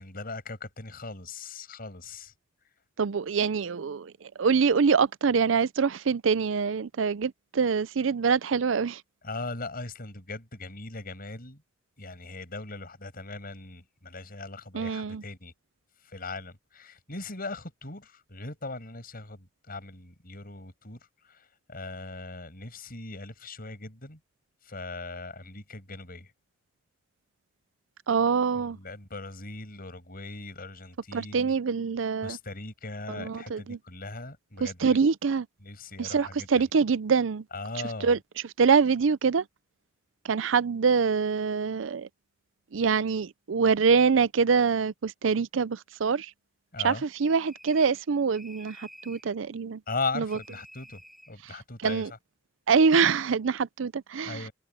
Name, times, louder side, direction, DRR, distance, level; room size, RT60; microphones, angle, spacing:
voice 1, 0.0-2.3 2.6-2.7 9.2-11.6 12.0-15.5 16.0-24.2 24.6-26.3 28.6-31.5 32.2-35.0 35.6-36.6 37.5-38.1 46.7-47.0 49.9-52.2 54.3-54.5, left 3 dB, 50° left, 6.6 m, -39 dB
voice 2, 3.0-9.0 14.7-15.2 28.1-28.8 31.1-32.4 33.1-33.8 34.6-35.5 36.0-37.4 38.0-38.2 38.6-39.4 40.2-42.1 42.7-46.3 46.8-49.8 50.2-50.3 51.8-52.1 52.7-54.4, right 5 dB, 90° right, 0.5 m, -25 dB
sound 1, 47.2-48.0 48.3-49.3 50.3-51.3, equal, ahead, 6.0 m, -50 dB
head